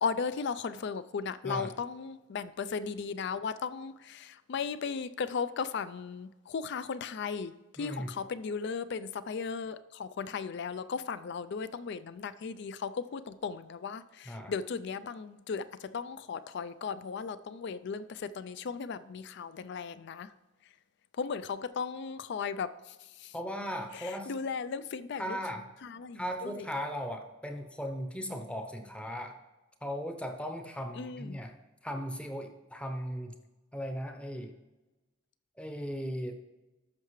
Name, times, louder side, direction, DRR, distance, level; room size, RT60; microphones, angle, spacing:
voice 1, 0.0-20.3 21.2-23.3 23.9-25.4 25.8-26.7 31.0-31.4, left 5 dB, 60° left, 14 dB, 0.4 m, -36 dB
voice 2, 7.8-8.1 14.2-14.5 23.3-24.3 25.2-25.6 26.1-29.4 29.8-31.5 31.8-33.3 33.7-34.5 35.6-36.3, equal, 5° left, 4 dB, 0.7 m, -37 dB
13.5 x 5.8 x 3.1 m, 1.1 s
head